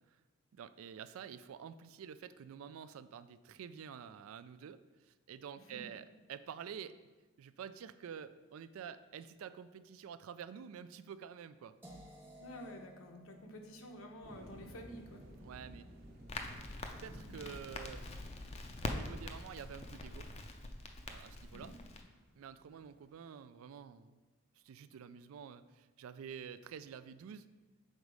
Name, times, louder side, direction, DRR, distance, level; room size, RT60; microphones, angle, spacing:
voice 1, 0.5-7.1 7.4-11.8 15.4-15.9 17.0-18.0 18.8-20.3 21.1-21.7 22.4-24.2 24.6-27.5, right 7 dB, 80° right, 14 dB, 0.3 m, -49 dB
voice 2, 5.6-5.9 12.4-15.2 21.5-21.7, equal, 75° left, 3 dB, 0.9 m, -50 dB
sound 1, 11.8-17.7, equal, 10° right, 0.8 m, -60 dB
sound 2, 14.2-23.1, equal, 45° right, 0.9 m, -56 dB
Crackle, 16.3-22.0, left 2 dB, 30° left, 0.4 m, -44 dB
6.5 x 4.0 x 4.8 m, 1.2 s
head